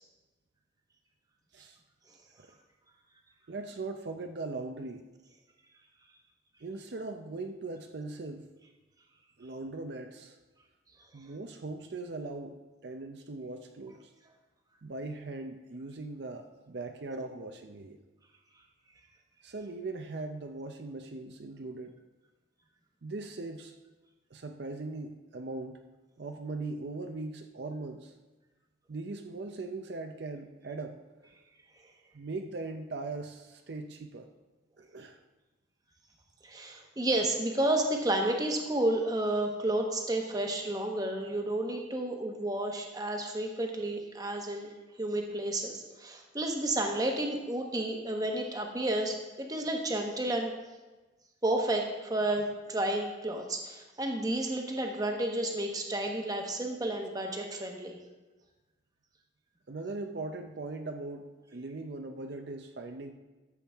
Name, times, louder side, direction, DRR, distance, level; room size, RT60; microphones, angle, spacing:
voice 1, 3.5-5.1 6.6-8.5 9.4-10.4 11.1-12.6 12.8-14.1 14.8-18.0 19.4-22.0 23.0-23.7 24.3-25.8 26.2-28.1 28.9-31.0 32.1-34.3 34.8-35.2 59.7-63.1, right 3 dB, 60° right, 5 dB, 0.5 m, -40 dB
voice 2, 36.4-44.7 45.0-50.5 51.4-58.0, right 1 dB, 20° right, 2 dB, 1.0 m, -31 dB
13.0 x 7.1 x 3.5 m, 1.2 s
head